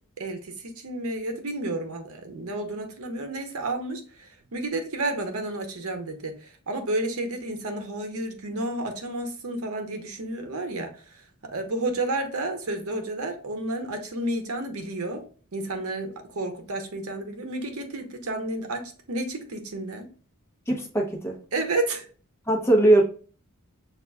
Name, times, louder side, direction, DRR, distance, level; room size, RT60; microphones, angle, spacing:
voice 1, 0.2-11.0 11.5-15.2 15.5-20.1 21.5-22.1, right 2 dB, 70° right, 5 dB, 0.8 m, -31 dB
voice 2, 20.7-21.3 22.5-23.0, right 1 dB, 10° left, 0 dB, 0.8 m, -20 dB
6.5 x 2.4 x 2.3 m, 0.40 s
head